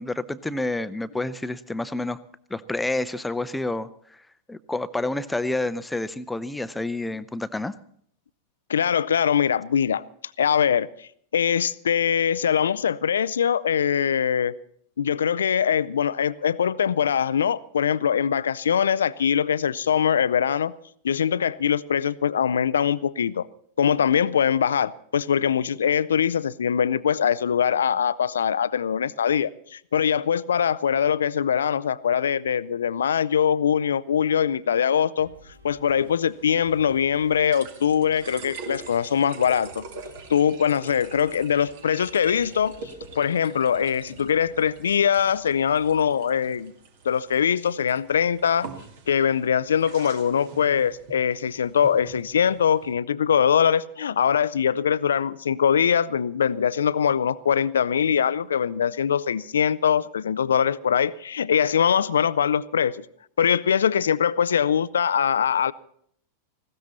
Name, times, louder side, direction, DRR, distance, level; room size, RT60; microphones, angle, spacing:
voice 1, 0.0-2.2 2.5-3.9 4.5-7.7, left 2 dB, 5° left, 0.8 m, -29 dB
voice 2, 8.7-10.0 10.4-14.6 15.0-20.7 21.0-23.5 23.8-35.3 35.6-39.8 40.3-42.8 43.2-46.7 47.0-48.7 49.1-63.1 63.4-65.7, left 8 dB, 65° left, 0.5 m, -22 dB
sound 1, 35.2-46.6, left 1 dB, 85° right, 2.3 m, -52 dB
sound 2, 35.9-52.9, right 4 dB, 55° right, 2.3 m, -44 dB
19.0 x 16.5 x 4.2 m
figure-of-eight pair, 90°, 0 cm